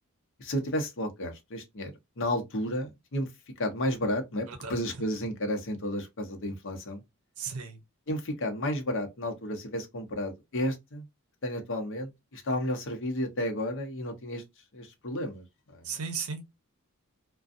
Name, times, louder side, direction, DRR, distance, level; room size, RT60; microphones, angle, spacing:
voice 1, 0.4-1.9 2.2-3.3 3.6-7.0 8.1-11.0 11.4-14.4 14.7-15.9, left 1 dB, 60° left, 0.7 m, -32 dB
voice 2, 4.5-5.0 7.4-7.8 15.8-16.4, right 5 dB, 75° right, 0.6 m, -36 dB
2.5 x 2.2 x 2.5 m
head